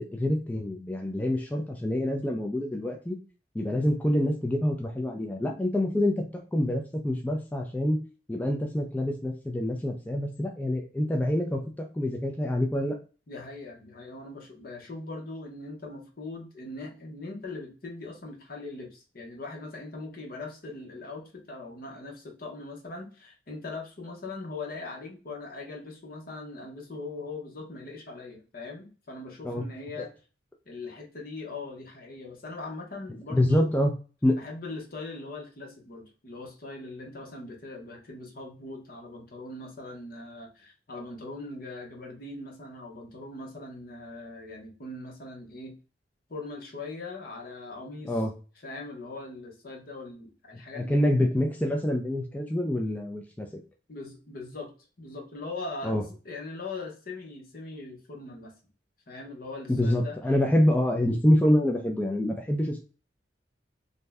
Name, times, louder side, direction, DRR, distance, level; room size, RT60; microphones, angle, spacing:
voice 1, 0.0-3.2 3.5-6.2 6.5-8.0 8.3-13.0 29.4-29.7 30.0-30.1 33.3-33.9 34.2-34.4 48.0-48.3 50.8-53.5 55.8-56.0 59.8-62.8, left 1 dB, 10° left, 1 dB, 0.3 m, -26 dB
voice 2, 13.3-30.1 30.7-33.7 34.4-45.7 46.3-48.2 48.6-51.0 53.9-54.7 55.0-56.0 56.2-58.5 59.1-60.2 60.6-60.7, left 3 dB, 55° left, 1 dB, 0.8 m, -40 dB
2.6 x 2.1 x 3.3 m, 0.35 s
head